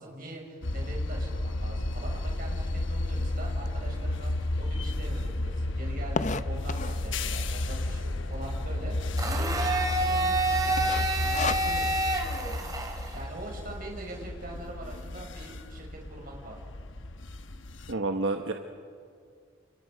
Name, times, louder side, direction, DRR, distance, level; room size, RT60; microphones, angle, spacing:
voice 1, 0.0-9.5 9.8-11.9 12.8-16.6, right 1 dB, 45° right, -1 dB, 6.0 m, -43 dB
sound 1, 0.6-17.9, left 2 dB, 70° left, 1.0 m, -32 dB
sound 2, 3.7-3.8 4.3-4.4 4.6-4.7 5.0-7.1 7.7-8.2 8.5-8.6 8.8-8.9 9.5-9.8 10.1-10.4 10.8-12.0, left 4 dB, 40° left, 0.6 m, -33 dB
Domestic sounds home sounds, 9.2-13.2, right 2 dB, 20° right, 2.6 m, -28 dB
voice 2, 17.9-18.5, right 2 dB, 75° right, 4 dB, 1.2 m, -29 dB
29.5 x 27.0 x 5.2 m, 2.1 s
head